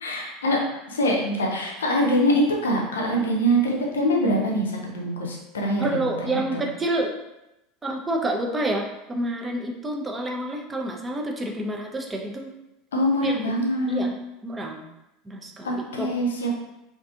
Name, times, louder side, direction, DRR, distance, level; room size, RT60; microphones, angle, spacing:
voice 1, 0.0-6.6 12.9-14.1 15.6-16.5, equal, 75° left, -1 dB, 0.5 m, -24 dB
voice 2, 5.8-7.1 7.8-12.5 13.2-13.4 13.9-14.8 15.3-16.1, right 1 dB, 20° right, 1 dB, 0.4 m, -28 dB
2.5 x 2.4 x 2.3 m, 0.91 s
figure-of-eight pair, 75°, 0 cm